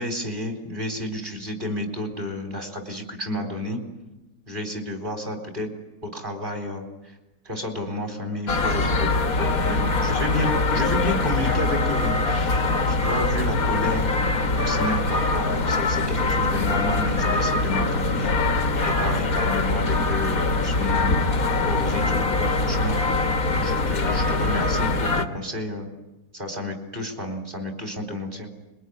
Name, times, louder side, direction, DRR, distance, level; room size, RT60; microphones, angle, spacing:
voice 1, 0.0-3.8 4.5-5.7 6.0-7.1 7.4-9.1 9.4-14.1 14.6-18.3 18.8-25.9 26.3-28.5, left 1 dB, 30° right, 4 dB, 4.3 m, -31 dB
sound 1, 8.5-25.3, left 3 dB, 60° left, 2.0 m, -23 dB
26.0 x 22.5 x 9.9 m, 1.0 s
omnidirectional pair, 1.7 m